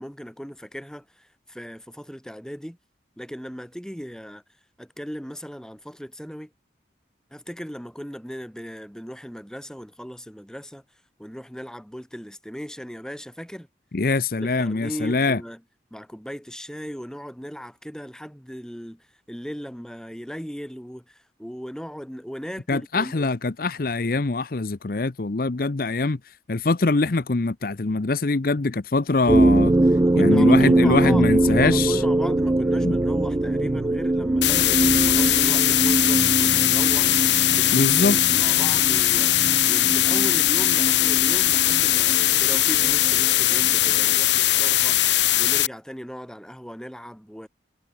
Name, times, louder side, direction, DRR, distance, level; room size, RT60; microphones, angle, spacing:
voice 1, 0.0-2.8 3.2-4.4 4.8-6.5 7.3-10.8 11.2-13.7 14.4-15.6 15.9-23.3 30.0-37.1 37.4-45.0 45.4-47.5, equal, 5° left, 4.3 m, -37 dB
voice 2, 13.9-15.4 22.7-26.2 26.5-29.7 30.2-32.0 32.8-32.9 37.7-38.2, left 3 dB, 55° left, 0.7 m, -23 dB
sound 1, 29.3-44.2, right 2 dB, 15° right, 0.3 m, -23 dB
sound 2, 34.4-45.7, left 15 dB, 75° left, 1.0 m, -20 dB
head